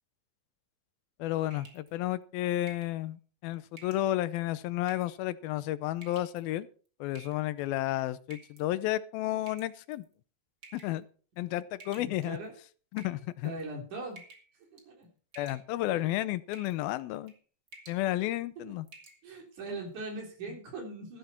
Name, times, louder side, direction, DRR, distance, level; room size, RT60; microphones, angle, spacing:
voice 1, 1.2-6.7 7.0-10.1 10.7-11.1 11.4-12.4 12.9-13.5 15.4-17.3 17.9-18.9, left 15 dB, 85° left, 15 dB, 2.6 m, -32 dB
sound 1, 1.5-1.9 2.7-3.0 3.8-4.1 4.8-5.2 6.0-6.4 7.2-7.6 8.3-8.6 9.5-10.0 10.6-11.0 11.8-12.5 12.9-13.6 14.2-14.5 14.8-15.0 15.3-15.9 16.5-16.8 17.1-17.4 17.7-18.0 18.4-18.5 18.9-19.2, right 2 dB, 30° right, 2.5 m, -52 dB
voice 2, 12.0-12.5 13.4-14.2 14.7-15.1 15.9-16.0 19.2-21.2, right 2 dB, 55° right, 2 dB, 5.0 m, -40 dB
14.0 x 11.5 x 4.4 m, 0.39 s
omnidirectional pair, 4.2 m